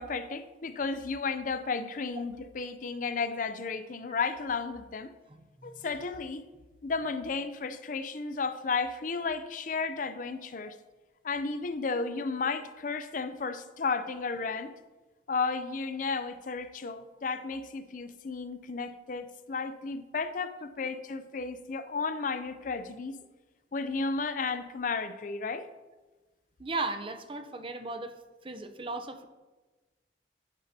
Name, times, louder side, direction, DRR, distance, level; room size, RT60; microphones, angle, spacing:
voice 1, 0.0-5.1 5.6-6.5 6.8-10.8 11.2-14.7 15.3-23.2 23.7-25.7, left 4 dB, 45° left, 11 dB, 0.5 m, -33 dB
voice 2, 5.3-5.7 26.6-28.2 28.4-29.3, right 3 dB, 30° right, 8 dB, 0.6 m, -36 dB
10.5 x 9.9 x 2.7 m, 1.2 s
head